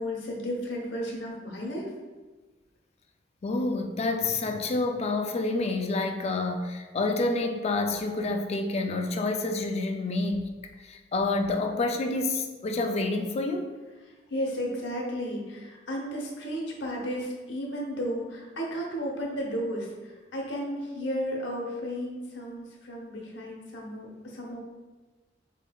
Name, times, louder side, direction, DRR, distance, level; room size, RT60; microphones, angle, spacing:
voice 1, 0.0-1.9 14.0-24.6, equal, 85° left, -2 dB, 0.9 m, -33 dB
voice 2, 3.4-10.5 10.8-13.7, left 2 dB, 35° left, 5 dB, 0.4 m, -28 dB
4.3 x 3.6 x 2.3 m, 1.3 s
head